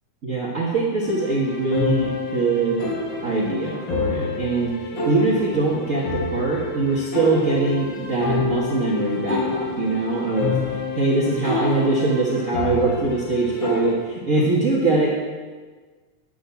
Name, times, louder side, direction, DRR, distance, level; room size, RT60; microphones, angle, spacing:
voice 1, 0.2-2.9 3.2-10.6 11.0-15.2, right 3 dB, 55° right, -4 dB, 0.8 m, -22 dB
sound 1, 1.0-13.9, left 3 dB, 40° left, 2.2 m, -28 dB
10.5 x 6.8 x 8.3 m, 1.4 s
omnidirectional pair, 3.8 m